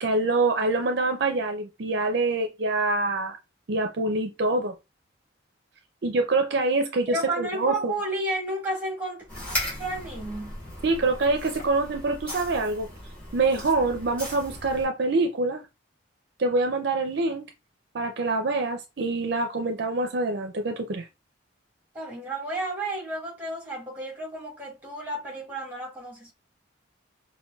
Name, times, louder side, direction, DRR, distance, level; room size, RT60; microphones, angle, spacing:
voice 1, 0.0-3.3 3.7-4.7 6.0-7.9 10.8-12.9 13.3-15.6 16.4-17.4 17.9-21.1, right 3 dB, 55° right, 0.4 m, -25 dB
voice 2, 7.1-9.3 9.8-10.6 21.9-26.3, right 2 dB, 10° right, 1.2 m, -32 dB
sound 1, 9.3-14.9, equal, 10° left, 2.0 m, -37 dB
5.2 x 2.2 x 2.3 m
head